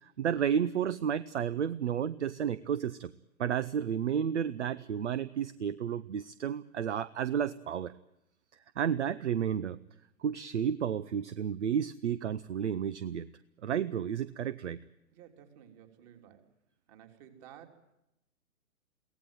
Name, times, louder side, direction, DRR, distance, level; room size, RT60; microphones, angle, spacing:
voice 1, 0.0-3.1 3.4-7.9 8.8-9.8 10.2-13.3 13.6-14.8, right 8 dB, 55° right, 17 dB, 0.9 m, -32 dB
voice 2, 15.1-16.5 16.9-17.9, right 10 dB, 30° right, 5 dB, 3.2 m, -54 dB
23.0 x 17.5 x 9.2 m, 0.90 s
figure-of-eight pair, 130°, 43 cm